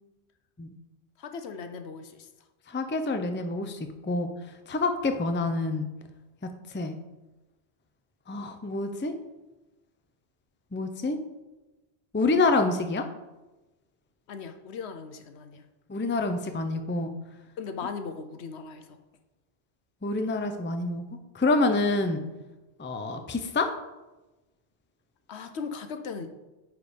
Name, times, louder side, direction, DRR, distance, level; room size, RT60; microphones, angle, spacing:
voice 1, 1.2-2.3 14.3-15.6 17.6-19.0 25.3-26.3, left 5 dB, 75° left, 8 dB, 1.0 m, -38 dB
voice 2, 2.7-4.3 4.7-5.9 6.7-7.0 8.3-9.1 10.7-11.2 12.1-13.1 15.9-17.1 20.0-21.0 21.3-22.2 22.8-23.7, left 3 dB, 15° left, 6 dB, 0.4 m, -27 dB
9.5 x 4.8 x 5.1 m, 1.1 s
omnidirectional pair, 1.1 m